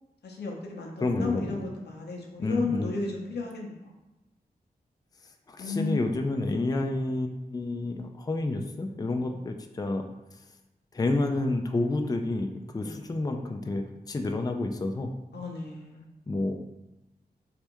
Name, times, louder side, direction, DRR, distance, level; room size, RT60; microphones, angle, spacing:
voice 1, 0.2-3.9 5.6-6.1 9.3-9.4 12.8-12.9 15.3-16.1, left 3 dB, 90° left, 0 dB, 0.7 m, -34 dB
voice 2, 1.0-1.6 2.4-2.9 5.5-10.0 10.9-15.1 16.3-16.6, left 2 dB, 25° left, 5 dB, 0.4 m, -29 dB
3.4 x 3.2 x 3.0 m, 0.96 s
cardioid pair, 45°, 17 cm